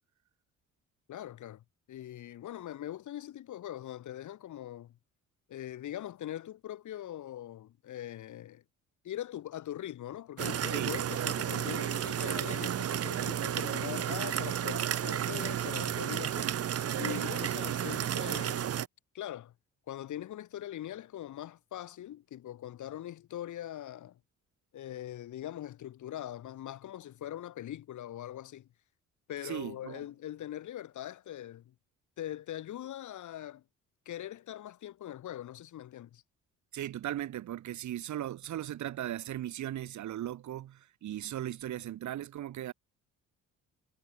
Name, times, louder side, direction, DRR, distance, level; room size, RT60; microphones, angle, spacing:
voice 1, 1.1-5.0 5.5-8.6 9.0-16.5 17.0-18.7 19.1-19.5 19.9-24.2 24.7-28.7 29.3-31.7 32.2-33.6 34.1-36.2, left 12 dB, 75° left, 7.6 m, -42 dB
sound 1, 10.4-18.9, right 10 dB, 50° right, 1.2 m, -32 dB
voice 2, 29.4-30.0 36.7-42.7, right 12 dB, 70° right, 1.9 m, -37 dB
cardioid pair, 90°, 30 cm